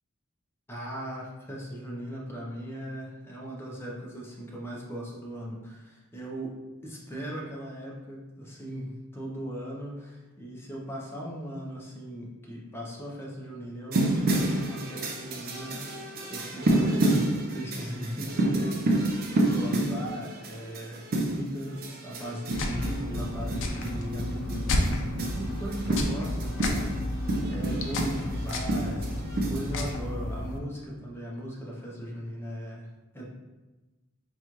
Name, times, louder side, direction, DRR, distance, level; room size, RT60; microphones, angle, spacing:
voice 1, 0.7-6.5 6.8-32.9 33.1-33.2, equal, 10° left, -3 dB, 0.6 m, -38 dB
sound 1, 13.9-29.9, right 1 dB, 45° right, 0.5 m, -29 dB
sound 2, 22.5-30.6, left 1 dB, 60° left, 0.4 m, -32 dB
4.1 x 2.3 x 3.0 m, 1.1 s
head